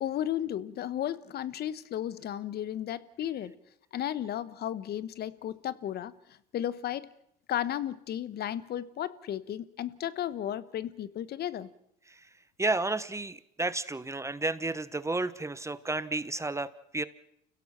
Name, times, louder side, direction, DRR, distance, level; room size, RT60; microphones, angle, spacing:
voice 1, 0.0-3.5 3.9-7.1 7.5-11.7, left 11 dB, 50° left, 17 dB, 1.2 m, -34 dB
voice 2, 12.6-17.1, right 2 dB, 15° right, 15 dB, 1.1 m, -32 dB
30.0 x 16.5 x 5.9 m, 0.72 s
hypercardioid pair, 75°, 20 cm